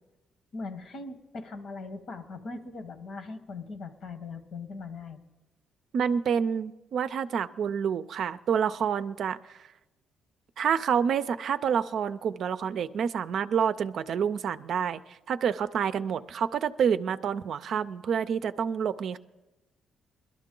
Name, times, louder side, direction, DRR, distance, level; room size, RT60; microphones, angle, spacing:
voice 1, 0.5-5.2, left 3 dB, 65° left, 9 dB, 1.3 m, -40 dB
voice 2, 5.9-9.6 10.6-19.2, right 7 dB, 65° right, 11 dB, 0.4 m, -28 dB
21.0 x 12.5 x 3.8 m, 1.1 s
cardioid pair, 90°, 0 cm